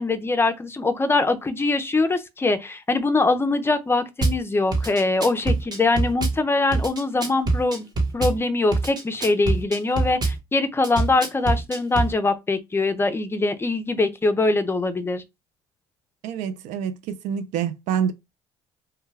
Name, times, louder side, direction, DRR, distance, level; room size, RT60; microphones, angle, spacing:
voice 1, 0.0-7.9 8.1-15.2, left 3 dB, 20° left, 0.5 m, -23 dB
Drum kit / Bass drum, 4.2-4.4 4.7-6.4 6.7-8.4 8.7-10.4 10.8-12.1, right 3 dB, 35° right, 0.9 m, -24 dB
voice 2, 16.2-18.1, right 8 dB, 75° right, 0.4 m, -27 dB
2.2 x 2.2 x 3.3 m
supercardioid pair, 75°, 13 cm